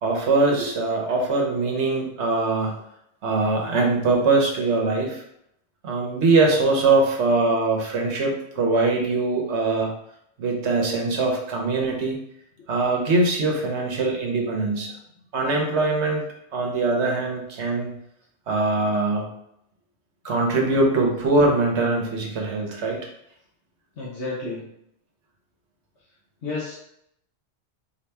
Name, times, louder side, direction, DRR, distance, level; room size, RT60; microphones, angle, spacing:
voice 1, 0.0-2.7 3.2-5.2 5.8-9.9 10.4-12.2 12.7-14.9 15.3-16.2 16.5-17.9 18.5-19.3 20.2-23.0, right 3 dB, 75° right, 0 dB, 1.3 m, -22 dB
voice 2, 24.0-24.6 26.4-26.7, left 3 dB, 75° left, -7 dB, 1.4 m, -31 dB
4.5 x 2.9 x 3.4 m, 0.73 s
omnidirectional pair, 1.2 m